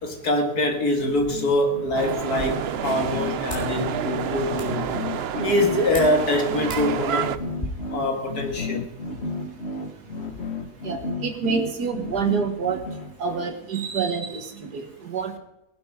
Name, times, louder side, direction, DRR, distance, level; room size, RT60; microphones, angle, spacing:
voice 1, 0.0-5.0 5.3-7.4 7.9-8.9, left 1 dB, 70° left, 2.5 m, -24 dB
sound 1, 1.0-13.5, left 2 dB, 45° left, 1.4 m, -33 dB
sound 2, 1.9-7.4, right 8 dB, 60° right, 0.6 m, -29 dB
sound 3, 2.2-7.7, left 1 dB, 20° left, 4.5 m, -41 dB
voice 2, 10.8-12.8 13.2-15.3, right 5 dB, 80° right, 2.2 m, -27 dB
18.5 x 11.5 x 4.8 m
omnidirectional pair, 1.7 m